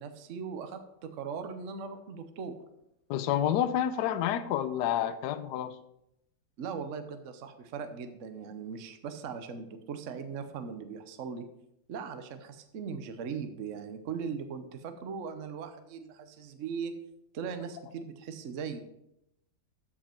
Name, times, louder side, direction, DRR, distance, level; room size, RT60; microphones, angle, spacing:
voice 1, 0.0-2.6 6.6-11.5 11.9-17.0 17.3-18.8, right 6 dB, 50° right, 8 dB, 1.0 m, -39 dB
voice 2, 3.1-5.7, left 10 dB, 70° left, 11 dB, 1.2 m, -29 dB
14.0 x 5.3 x 4.5 m, 0.82 s
omnidirectional pair, 2.0 m